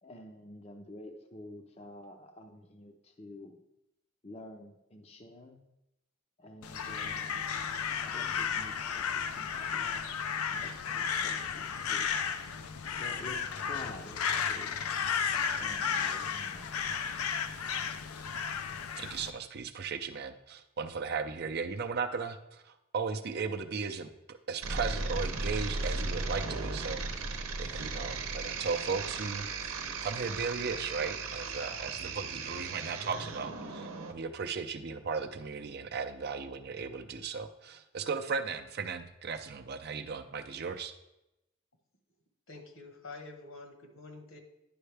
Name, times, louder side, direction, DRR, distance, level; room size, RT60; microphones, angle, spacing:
voice 1, 0.0-3.6 4.2-5.7 6.4-7.5 8.0-10.0 10.5-12.1 13.0-14.2 14.5-14.8 15.5-16.7, left 1 dB, 30° left, 4 dB, 0.5 m, -49 dB
Crow, 6.6-19.3, left 7 dB, 85° left, 0.5 m, -33 dB
voice 2, 19.0-40.9, right 5 dB, 50° right, 7 dB, 0.5 m, -36 dB
sound 1, 24.6-34.1, right 3 dB, 75° right, 0.8 m, -36 dB
voice 3, 42.5-44.4, left 3 dB, 65° left, 4 dB, 1.2 m, -47 dB
10.0 x 5.5 x 3.3 m, 0.88 s
head